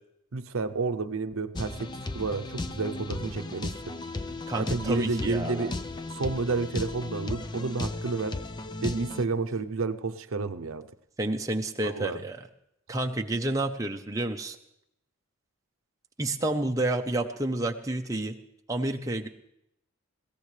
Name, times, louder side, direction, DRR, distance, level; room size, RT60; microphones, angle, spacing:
voice 1, 0.3-4.0 4.5-5.7 6.1-8.4 8.8-10.9 11.8-12.2, right 3 dB, 80° right, 10 dB, 0.7 m, -30 dB
sound 1, 1.5-9.2, left 2 dB, 20° left, 0.4 m, -35 dB
voice 2, 4.5-5.7 11.2-12.4 12.9-14.6 16.2-18.4 18.7-19.3, right 1 dB, 15° right, 3 dB, 0.8 m, -29 dB
21.0 x 16.5 x 3.3 m, 0.78 s
head